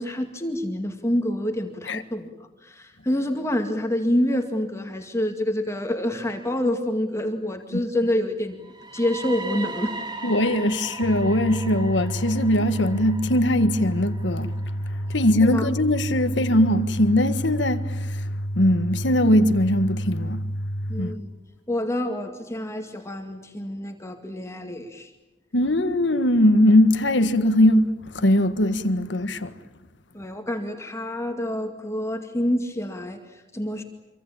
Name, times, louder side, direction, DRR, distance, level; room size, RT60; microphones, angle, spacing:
voice 1, 0.0-8.6 8.9-9.9 15.4-15.7 20.9-21.3 21.7-25.1 30.1-33.8, left 1 dB, 15° left, 2.2 m, -27 dB
sound 1, 8.6-16.5, right 3 dB, 25° right, 2.2 m, -39 dB
voice 2, 10.2-14.5 15.1-18.2 18.5-20.4 21.0-21.1 25.5-29.5, left 1 dB, 80° left, 1.7 m, -20 dB
sound 2, 11.0-21.0, equal, 60° left, 1.2 m, -30 dB
26.5 x 25.0 x 8.8 m
head